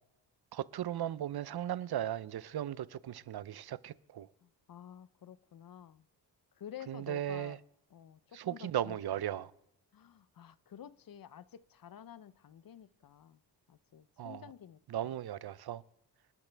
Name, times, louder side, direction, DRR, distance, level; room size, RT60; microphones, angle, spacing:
voice 1, 0.5-4.3 6.9-7.6 8.3-9.5 14.2-14.5 14.9-15.8, right 11 dB, 60° right, 0.7 m, -37 dB
voice 2, 4.4-6.0 6.6-7.6 7.9-9.2 9.9-13.4 13.7-15.1, left 10 dB, 55° left, 0.7 m, -51 dB
26.5 x 12.0 x 3.4 m
cardioid pair, 105°, 42 cm